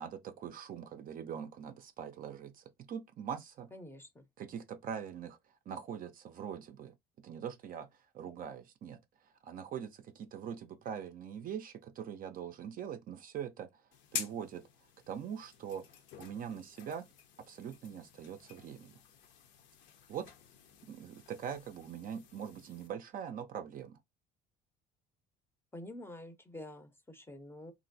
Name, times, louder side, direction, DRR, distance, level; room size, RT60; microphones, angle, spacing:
voice 1, 0.0-3.7 4.4-5.4 5.7-14.6 15.1-15.9 16.2-17.1 17.5-19.0 20.1-20.3 20.9-24.0, right 8 dB, 45° right, 0.4 m, -43 dB
voice 2, 3.7-4.2 25.7-27.7, left 1 dB, 10° left, 0.5 m, -48 dB
sound 1, 13.9-22.9, left 8 dB, 65° left, 0.6 m, -48 dB
3.0 x 2.5 x 2.5 m
supercardioid pair, 85°, 20 cm